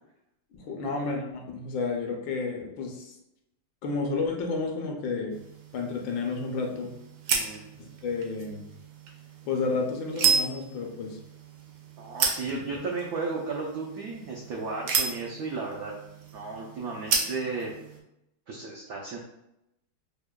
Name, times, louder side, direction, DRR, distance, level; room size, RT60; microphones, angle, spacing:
voice 1, 0.5-3.1 3.8-5.4 5.7-6.9 7.8-8.7 9.5-11.2, left 4 dB, 75° left, 1 dB, 1.3 m, -31 dB
sound 1, 5.3-18.0, right 5 dB, 70° right, 1.1 m, -33 dB
voice 2, 7.3-7.6 12.0-15.9 16.3-17.7 18.5-19.2, right 4 dB, 85° right, -2 dB, 0.8 m, -34 dB
6.0 x 2.1 x 2.2 m, 0.86 s
omnidirectional pair, 2.2 m